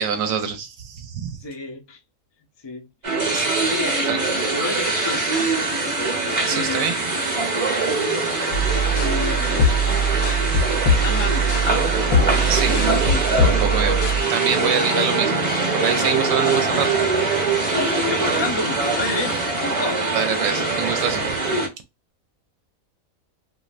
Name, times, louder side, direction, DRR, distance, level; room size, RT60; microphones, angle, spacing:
voice 1, 0.0-1.4 3.3-3.6 4.1-4.2 6.4-6.9 12.5-12.8 13.4-14.0 14.3-15.5 15.7-16.9 20.1-21.3, right 7 dB, 75° right, 0.9 m, -25 dB
voice 2, 1.4-2.0 2.6-2.8 3.6-4.0 4.5-5.5 6.1-6.9 7.8-9.7 10.8-13.6 14.7-14.8 18.1-20.0, left 3 dB, 30° left, 0.5 m, -31 dB
sound 1, 3.0-21.7, right 3 dB, 30° right, 0.9 m, -23 dB
sound 2, 7.3-17.1, right 5 dB, 55° right, 0.6 m, -37 dB
sound 3, 8.5-14.2, right 1 dB, 65° left, 1.0 m, -21 dB
3.1 x 2.5 x 2.4 m
omnidirectional pair, 1.4 m